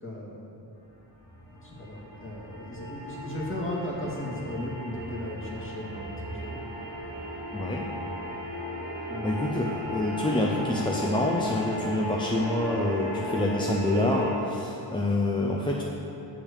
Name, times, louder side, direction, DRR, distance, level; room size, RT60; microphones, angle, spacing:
voice 1, 0.0-0.6 1.6-6.6 9.1-9.5, left 1 dB, 30° left, -5 dB, 1.9 m, -36 dB
sound 1, 0.9-14.3, left 1 dB, 75° left, 2.2 m, -35 dB
voice 2, 7.5-7.8 9.2-15.8, left 1 dB, 10° left, -2 dB, 0.6 m, -27 dB
8.4 x 6.0 x 6.6 m, 2.9 s
wide cardioid pair, 125°, 44 cm